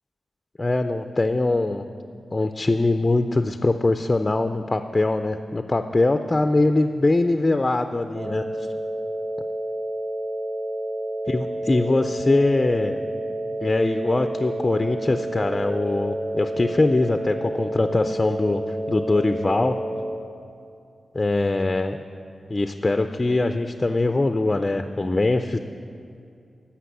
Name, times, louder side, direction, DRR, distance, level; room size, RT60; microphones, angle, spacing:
voice 1, 0.6-1.8 2.3-8.7 11.3-13.0 13.6-18.6 18.9-19.8 21.1-22.0 22.5-25.6, left 2 dB, 20° left, 8 dB, 0.3 m, -22 dB
sound 1, 8.1-20.1, right 1 dB, 65° right, 1.7 m, -30 dB
13.5 x 5.9 x 8.2 m, 2.5 s
wide cardioid pair, 165°, 0 cm